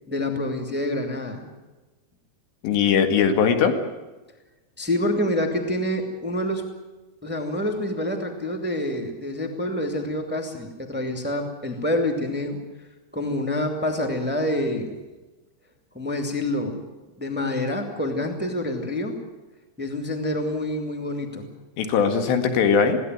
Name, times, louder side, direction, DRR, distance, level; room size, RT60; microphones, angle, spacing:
voice 1, 0.1-1.4 4.8-6.6 7.2-12.6 13.1-15.0 15.9-16.8 17.2-19.2 19.8-21.5, left 1 dB, 5° right, 3 dB, 0.8 m, -27 dB
voice 2, 2.6-3.8 21.8-23.0, left 6 dB, 70° left, 7 dB, 4.0 m, -20 dB
22.0 x 17.0 x 9.5 m, 1.2 s
omnidirectional pair, 5.2 m